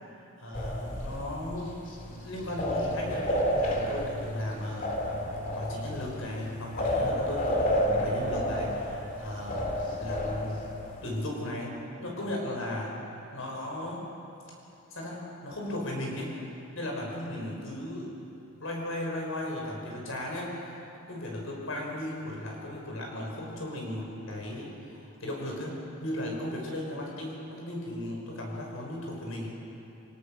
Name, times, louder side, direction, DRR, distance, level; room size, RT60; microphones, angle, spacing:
voice 1, 0.4-1.8 2.2-4.9 5.5-10.6 11.0-13.0 13.3-14.1 14.9-16.4 16.7-18.2 18.6-29.5, left 1 dB, 75° left, -1 dB, 5.8 m, -36 dB
sound 1, 0.5-11.2, equal, 40° left, 2.5 m, -31 dB
27.0 x 18.0 x 6.3 m, 2.9 s
head